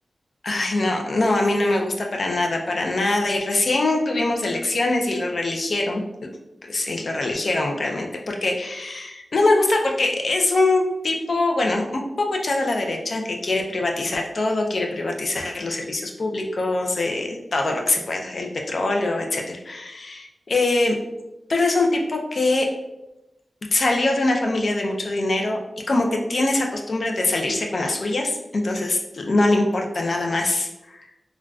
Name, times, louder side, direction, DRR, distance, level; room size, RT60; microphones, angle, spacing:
voice 1, 0.4-6.0 6.7-20.9 21.5-22.7 23.7-25.6 25.9-31.1, left 2 dB, 60° left, 1 dB, 0.4 m, -23 dB
3.7 x 2.2 x 2.3 m, 0.94 s
wide cardioid pair, 115°, 0 cm